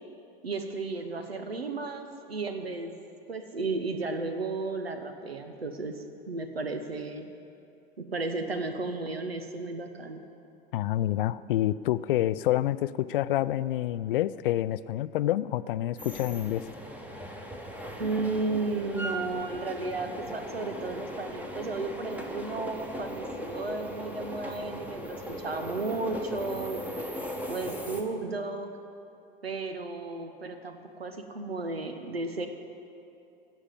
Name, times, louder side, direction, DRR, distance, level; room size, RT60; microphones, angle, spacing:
voice 1, 0.4-2.9 3.3-7.3 8.0-10.2 18.0-26.8 27.5-28.7 29.4-32.5, right 3 dB, 85° right, 7 dB, 1.0 m, -34 dB
voice 2, 10.7-16.6, left 13 dB, 65° left, 16 dB, 0.4 m, -28 dB
sound 1, 16.0-28.0, equal, 5° right, 1.3 m, -38 dB
16.0 x 5.6 x 7.7 m, 2.7 s
figure-of-eight pair, 80°, 29 cm